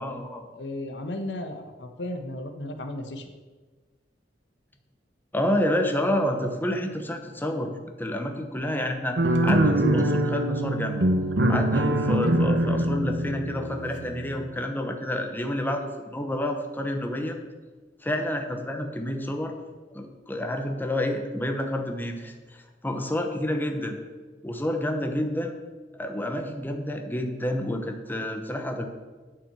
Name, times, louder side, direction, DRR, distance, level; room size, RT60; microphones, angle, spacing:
voice 1, 0.0-0.4 5.3-7.7 8.0-11.0 11.5-17.4 18.0-19.5 19.9-22.3 22.8-24.0 24.4-25.5 25.9-28.9, left 1 dB, 10° left, 4 dB, 1.0 m, -29 dB
voice 2, 0.5-3.3, left 1 dB, 80° left, 7 dB, 1.2 m, -35 dB
sound 1, 9.2-14.5, right 1 dB, 75° right, 1.1 m, -24 dB
10.0 x 5.9 x 8.2 m, 1.3 s
head